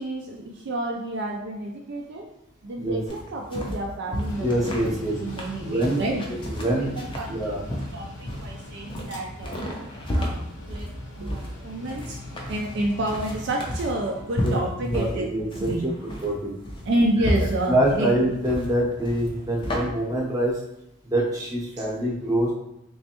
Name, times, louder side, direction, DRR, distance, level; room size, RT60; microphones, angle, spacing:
voice 1, 0.0-2.3 2.6-6.2 6.6-7.6 7.9-9.8 10.1-10.9 11.1-12.2 12.5-15.3 15.6-15.9 16.9-18.1 21.8-21.9, right 1 dB, 50° right, 0 dB, 0.4 m, -29 dB
sound 1, 3.1-19.8, equal, 25° left, 0.5 m, -32 dB
Mechanical fan, 4.2-17.6, left 1 dB, 80° left, 0.9 m, -41 dB
voice 2, 4.4-5.2 5.6-6.0 6.3-6.9 7.3-7.6 14.4-14.6 14.8-15.9 16.2-16.5 17.7-20.5 21.0-22.5, right 1 dB, 15° right, -4 dB, 0.7 m, -25 dB
3.3 x 3.1 x 2.9 m, 0.81 s
head